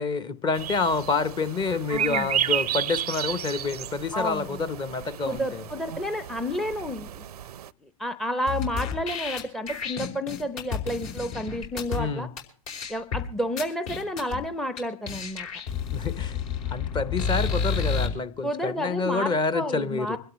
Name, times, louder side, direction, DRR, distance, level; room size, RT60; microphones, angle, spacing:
voice 1, 0.0-5.6 11.9-12.3 15.9-16.4 16.7-20.2, left 4 dB, 25° left, 0.9 m, -28 dB
sound 1, 0.5-7.7, right 10 dB, 80° right, 0.6 m, -32 dB
voice 2, 1.9-2.3 4.1-4.6 5.2-7.3 7.8-12.3 12.9-15.5 18.4-20.2, equal, ahead, 0.6 m, -31 dB
sound 2, 8.5-12.0 12.4-12.5 12.7-13.2 13.6-14.4 14.8-14.9 15.1-18.1, left 6 dB, 60° left, 5.0 m, -30 dB
25.0 x 12.5 x 3.1 m
hypercardioid pair, 110°, 19 cm